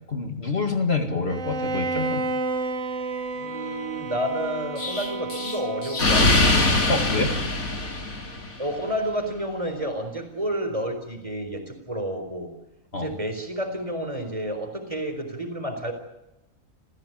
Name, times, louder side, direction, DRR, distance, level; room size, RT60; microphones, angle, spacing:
voice 1, 0.1-2.2 6.9-7.3 12.9-13.1, left 3 dB, 50° left, 5 dB, 2.2 m, -26 dB
Bowed string instrument, 1.3-6.4, right 2 dB, 65° right, 1.9 m, -31 dB
voice 2, 3.3-6.5 8.6-12.5 13.0-15.9, equal, 25° right, 6 dB, 4.4 m, -30 dB
Explosion, 4.8-8.6, left 2 dB, 80° left, 3.8 m, -23 dB
28.5 x 16.0 x 9.1 m, 0.96 s
omnidirectional pair, 1.4 m